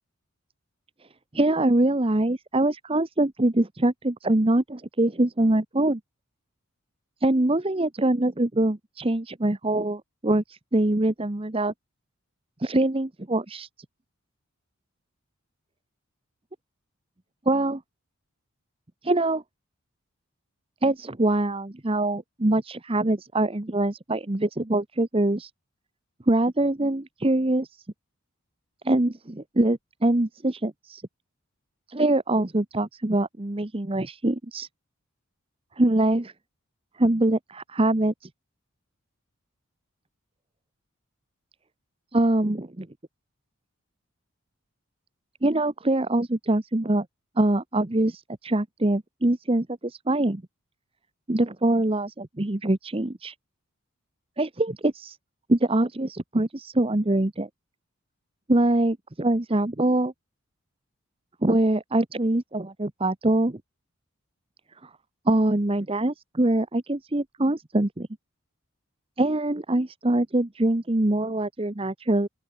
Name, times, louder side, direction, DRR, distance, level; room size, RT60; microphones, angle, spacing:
voice 1, 1.3-6.0 7.2-11.7 12.6-13.7 17.5-17.8 19.0-19.4 20.8-25.5 26.3-27.7 28.8-31.0 31.9-34.7 35.8-36.3 37.0-38.3 42.1-42.9 45.4-47.1 47.4-50.4 51.3-53.3 54.4-55.2 55.5-57.5 58.5-60.1 61.4-63.6 64.8-64.9 65.3-68.1 69.2-72.3, right 1 dB, 25° right, 0.9 m, -24 dB
open air
head